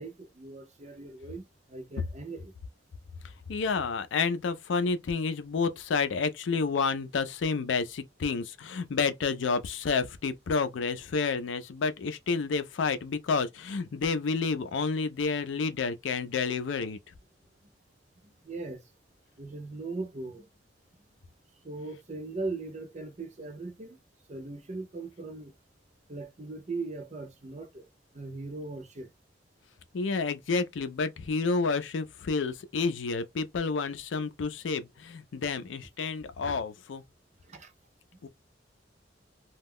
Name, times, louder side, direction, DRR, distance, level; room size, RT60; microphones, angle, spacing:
voice 1, 0.0-2.5 18.2-18.8 19.4-20.5 21.6-24.0 24.3-25.5 26.1-27.9 28.1-29.1 37.5-37.7, right 3 dB, 35° right, 0.6 m, -39 dB
voice 2, 3.5-17.0 29.9-37.0 38.2-38.3, left 4 dB, 80° left, 0.4 m, -30 dB
2.3 x 2.0 x 3.5 m
head